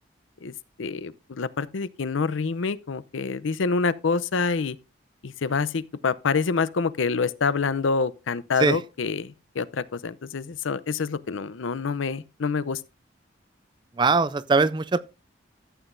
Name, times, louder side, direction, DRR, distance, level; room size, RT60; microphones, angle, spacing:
voice 1, 0.8-4.8 5.2-12.8, left 4 dB, 85° left, 0.6 m, -27 dB
voice 2, 14.0-15.0, right 4 dB, 25° right, 0.3 m, -21 dB
13.5 x 8.0 x 2.6 m
head